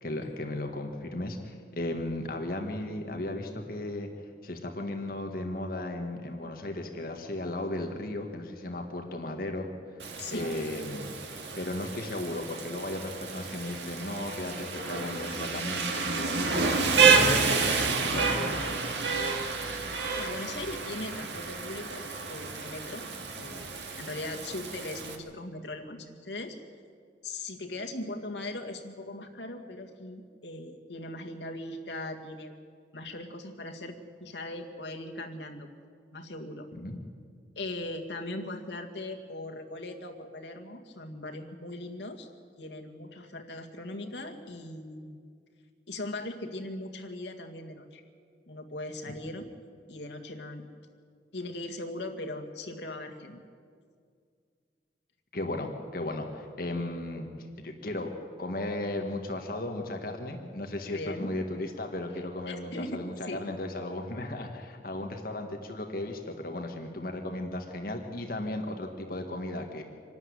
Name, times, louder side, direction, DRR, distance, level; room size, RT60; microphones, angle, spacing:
voice 1, 0.0-4.1 4.4-9.7 10.3-11.1 11.6-17.8 18.1-18.8 36.7-37.0 49.1-49.2 55.3-57.3 57.6-58.1 58.4-69.8, left 1 dB, 55° left, 4 dB, 1.7 m, -35 dB
Rain, 10.0-25.1, right 4 dB, 85° right, 2.2 m, -29 dB
voice 2, 10.2-10.5 20.2-23.1 23.3-26.6 27.2-32.5 32.9-35.7 36.1-36.7 37.6-42.3 42.6-45.2 45.9-48.0 48.5-49.5 49.9-50.7 51.3-53.4 60.9-61.4 62.5-63.4, left 2 dB, 85° left, 3 dB, 2.0 m, -39 dB
25.5 x 13.0 x 9.8 m, 2.1 s
head